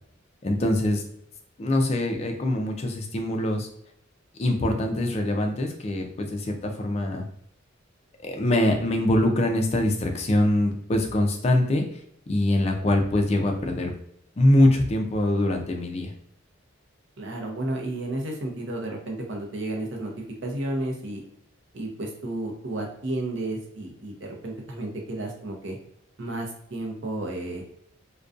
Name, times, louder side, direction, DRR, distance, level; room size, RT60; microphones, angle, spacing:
voice 1, 0.4-1.0 1.6-3.7 4.4-7.2 8.2-11.8 12.3-13.9 14.4-16.1, left 1 dB, 30° left, 3 dB, 0.3 m, -23 dB
voice 2, 17.2-20.1 20.4-21.2 21.7-25.8 26.2-27.6, right 1 dB, 65° right, 1 dB, 0.6 m, -32 dB
2.5 x 2.2 x 2.4 m, 0.72 s
head